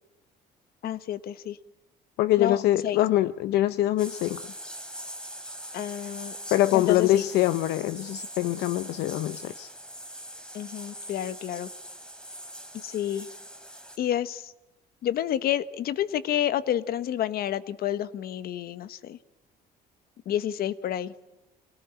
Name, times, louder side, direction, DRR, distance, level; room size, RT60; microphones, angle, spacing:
voice 1, 0.8-1.6 2.4-3.0 5.7-6.4 6.7-7.3 10.5-11.7 12.7-13.3 14.0-14.5 15.0-19.2 20.2-21.1, left 11 dB, 65° left, 14 dB, 1.4 m, -29 dB
voice 2, 2.2-4.4 6.5-9.7, left 14 dB, 85° left, 13 dB, 0.8 m, -24 dB
sound 1, 4.0-14.0, equal, 5° left, 3.3 m, -42 dB
26.0 x 18.5 x 8.9 m, 1.0 s
cardioid pair, 110°, 17 cm